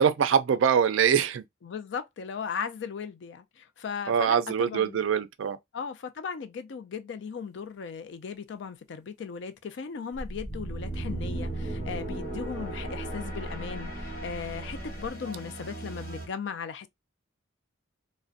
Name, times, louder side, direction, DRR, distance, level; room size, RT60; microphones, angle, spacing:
voice 1, 0.0-1.4 4.1-5.6, right 7 dB, 70° right, 0.3 m, -23 dB
voice 2, 1.6-5.0 5.7-16.9, left 6 dB, 60° left, 0.3 m, -37 dB
sound 1, 10.1-15.1, equal, 5° left, 0.6 m, -40 dB
sound 2, 10.3-16.3, right 2 dB, 45° left, 1.1 m, -37 dB
2.4 x 2.1 x 2.5 m
head